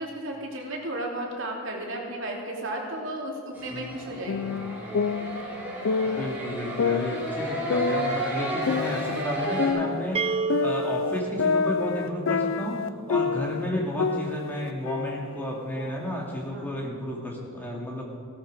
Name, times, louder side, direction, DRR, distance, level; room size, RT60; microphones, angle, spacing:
voice 1, 0.0-4.5 16.5-16.7, right 1 dB, 65° right, -1 dB, 2.9 m, -34 dB
sound 1, 3.5-9.7, equal, 10° right, 3.6 m, -32 dB
voice 2, 4.2-4.7 6.0-10.2 10.6-18.0, left 1 dB, 10° left, -2 dB, 2.4 m, -32 dB
sound 2, 4.3-6.4 6.8-9.2 9.6-13.7 14.0-16.0, left 5 dB, 70° left, 0.4 m, -28 dB
sound 3, 10.1-13.9, right 5 dB, 25° right, 0.3 m, -32 dB
17.0 x 13.0 x 5.1 m, 2.3 s
head